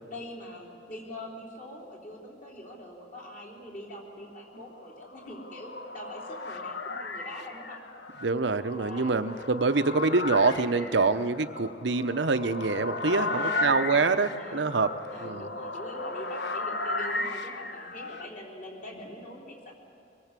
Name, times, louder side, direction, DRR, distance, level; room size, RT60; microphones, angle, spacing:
voice 1, 0.0-7.8 8.8-9.1 10.7-11.2 13.0-14.6 15.1-19.7, left 1 dB, 50° left, -3 dB, 3.9 m, -43 dB
sound 1, 4.8-18.3, left 2 dB, 70° left, 1.1 m, -35 dB
voice 2, 8.2-14.9 15.2-15.5, right 3 dB, 80° right, 11 dB, 0.8 m, -25 dB
24.0 x 20.5 x 7.5 m, 2.5 s
head